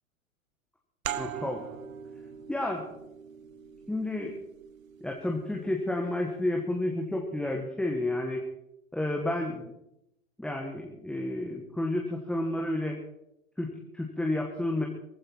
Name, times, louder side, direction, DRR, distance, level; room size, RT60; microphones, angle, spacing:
sound 1, 1.0-6.3, right 9 dB, 70° right, 1.3 m, -42 dB
voice 1, 1.2-1.6 2.5-2.9 3.9-4.3 5.0-8.4 8.9-9.7 10.4-13.0 13.6-14.9, left 1 dB, ahead, 0 dB, 1.7 m, -31 dB
19.0 x 15.0 x 4.7 m, 0.83 s
hypercardioid pair, 130°, 42 cm